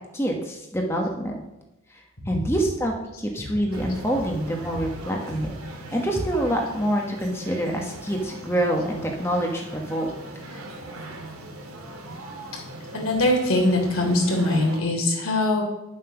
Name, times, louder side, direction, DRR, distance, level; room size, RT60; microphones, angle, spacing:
voice 1, 0.1-1.4 1.9-5.5 5.9-10.1 10.5-10.6, right 1 dB, 10° left, 0 dB, 1.3 m, -26 dB
sound 1, 3.7-14.8, right 1 dB, 80° right, 2.5 m, -40 dB
voice 2, 12.9-15.6, left 1 dB, 75° left, 0 dB, 3.3 m, -22 dB
11.0 x 7.7 x 5.9 m, 0.97 s
head